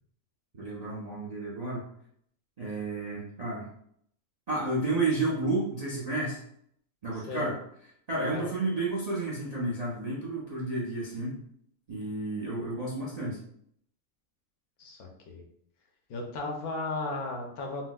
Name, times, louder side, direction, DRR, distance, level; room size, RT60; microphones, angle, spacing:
voice 1, 0.5-1.8 2.6-3.7 4.5-6.4 7.0-7.6 8.1-11.3 11.9-13.4, right 2 dB, 55° right, -6 dB, 0.4 m, -31 dB
voice 2, 7.2-7.5 8.2-8.5 14.8-15.4 16.1-17.8, left 2 dB, 75° left, 1 dB, 1.1 m, -35 dB
4.2 x 2.0 x 2.2 m, 0.67 s
omnidirectional pair, 1.6 m